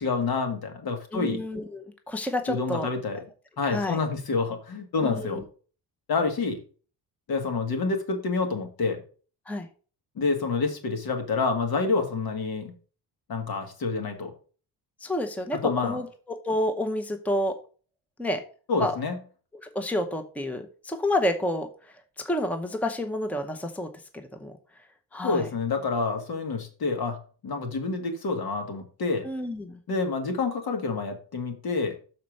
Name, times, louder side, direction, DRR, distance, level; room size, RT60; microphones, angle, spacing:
voice 1, 0.0-1.4 2.5-3.2 3.6-5.4 6.1-6.6 7.3-9.0 10.2-12.7 13.3-14.3 15.5-16.0 18.7-19.2 25.2-27.2 27.4-29.3 29.9-32.0, left 4 dB, 60° left, 5 dB, 1.9 m, -28 dB
voice 2, 1.1-2.9 3.6-4.0 5.0-5.4 9.5-9.7 15.0-17.6 18.2-18.4 18.8-19.0 19.6-21.9 22.2-24.5 25.1-25.5 29.2-29.8, left 1 dB, 5° left, 7 dB, 0.8 m, -29 dB
6.7 x 4.3 x 6.4 m, 0.39 s
cardioid pair, 120°, 40 cm